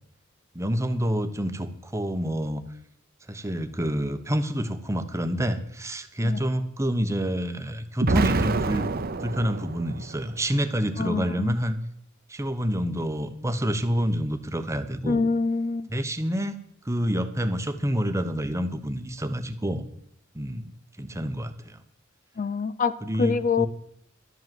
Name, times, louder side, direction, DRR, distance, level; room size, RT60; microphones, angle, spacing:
voice 1, 0.5-2.7 3.3-8.9 9.2-11.8 12.3-15.2 15.9-16.6 16.8-19.8 20.3-20.7 21.0-21.8 23.0-23.7, equal, 15° right, 8 dB, 0.9 m, -28 dB
Explosion, 8.0-10.2, right 3 dB, 45° right, 0.7 m, -26 dB
voice 2, 11.0-11.6 15.1-15.9 22.4-23.7, left 4 dB, 40° left, 14 dB, 0.4 m, -26 dB
12.0 x 7.9 x 7.6 m, 0.73 s
head